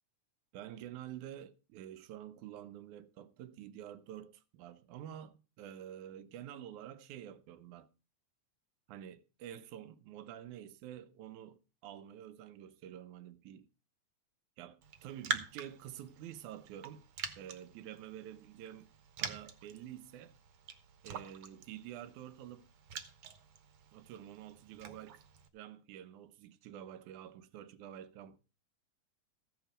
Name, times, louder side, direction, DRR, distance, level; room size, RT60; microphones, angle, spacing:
voice 1, 0.5-7.9 8.9-13.7 14.6-17.1 17.4-18.9 19.2-20.4 21.0-22.7 23.9-25.2 25.5-28.4, right 11 dB, 80° right, 2.3 m, -48 dB
Raindrop, 14.8-25.5, right 7 dB, 60° right, 1.7 m, -45 dB
15.0 x 7.4 x 5.0 m
omnidirectional pair, 3.5 m